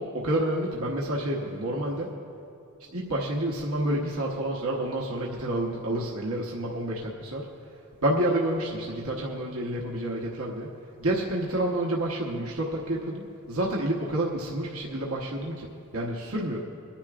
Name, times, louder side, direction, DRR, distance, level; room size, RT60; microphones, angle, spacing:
voice 1, 0.0-2.1 2.9-7.5 8.0-10.7 11.0-16.6, right 1 dB, 80° right, -2 dB, 1.1 m, -29 dB
25.0 x 10.0 x 2.5 m, 2.8 s
head